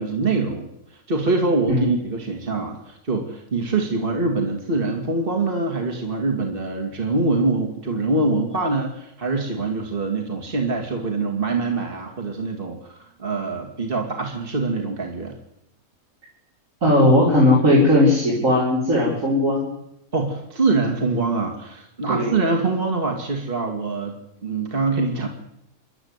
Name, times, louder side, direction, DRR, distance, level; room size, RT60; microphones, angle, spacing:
voice 1, 0.0-15.3 20.1-24.1 24.4-25.3, right 3 dB, 40° right, 2 dB, 2.6 m, -24 dB
voice 2, 16.8-19.7 22.1-22.3, left 1 dB, 65° right, -4 dB, 5.0 m, -17 dB
28.0 x 11.5 x 9.6 m, 0.82 s
omnidirectional pair, 1.5 m